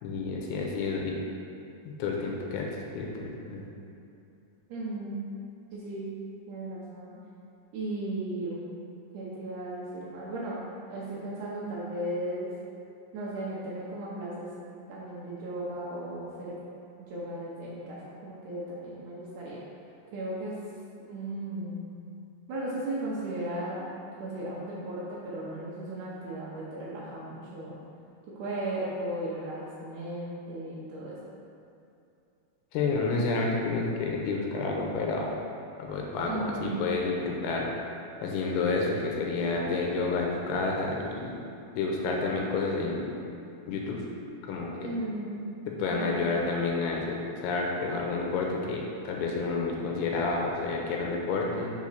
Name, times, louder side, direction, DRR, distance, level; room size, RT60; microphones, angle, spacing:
voice 1, 0.0-1.2 1.9-2.7 3.0-3.7 32.7-35.4 35.8-37.7 38.2-41.4 41.7-43.1 43.7-44.0 44.5-44.9 45.7-51.7, left 3 dB, 80° left, -1 dB, 2.7 m, -30 dB
voice 2, 4.7-5.2 5.7-6.1 6.5-7.1 7.7-8.6 9.1-10.6 10.9-12.5 13.1-14.5 14.9-16.6 17.0-19.6 20.1-20.6 21.0-21.9 22.5-23.8 24.2-27.8 28.3-31.2 36.3-36.8 44.8-45.5 45.9-46.2, right 1 dB, 90° right, -7 dB, 1.7 m, -36 dB
6.3 x 4.2 x 5.7 m, 2.6 s
omnidirectional pair, 4.9 m